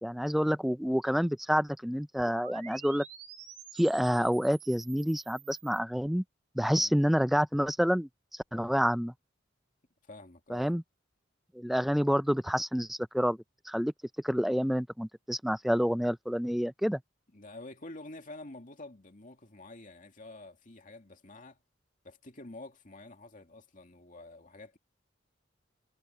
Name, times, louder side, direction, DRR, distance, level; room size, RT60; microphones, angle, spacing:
voice 1, 0.0-3.0 3.7-6.2 6.6-8.1 8.5-9.1 10.5-10.8 11.6-13.4 13.7-13.9 14.2-17.0, equal, ahead, 0.4 m, -28 dB
sound 1, 2.2-5.8, right 8 dB, 40° right, 3.6 m, -49 dB
voice 2, 6.6-7.0 10.0-10.8 17.3-21.6 22.0-24.8, left 2 dB, 40° left, 2.4 m, -48 dB
head